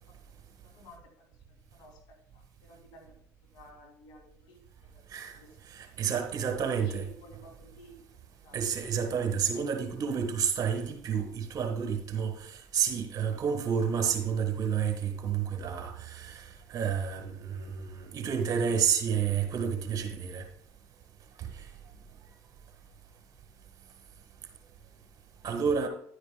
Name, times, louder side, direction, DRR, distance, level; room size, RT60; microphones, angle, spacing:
voice 1, 0.6-1.3 1.7-3.1 3.5-5.0 5.3-5.5 5.7-8.0 8.4-8.6, equal, 65° left, 2.3 m, -54 dB
voice 2, 5.7-7.1 8.5-20.5 21.4-21.5 25.4-25.9, right 7 dB, 50° right, 1.4 m, -30 dB
10.0 x 9.8 x 2.2 m
hypercardioid pair, 70°, 8 cm